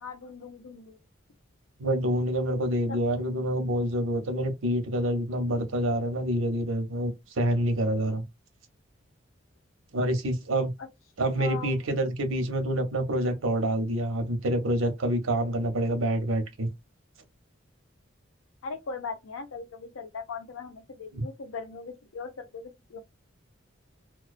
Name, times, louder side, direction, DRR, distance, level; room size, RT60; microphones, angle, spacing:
voice 1, 0.0-1.0 2.9-3.6 10.8-10.9 11.3-11.7 18.6-23.0, left 4 dB, 85° left, 0.6 m, -39 dB
voice 2, 1.8-8.2 9.9-10.7 11.2-16.7 21.1-21.2, right 1 dB, 85° right, 0.7 m, -27 dB
2.3 x 2.2 x 2.4 m
head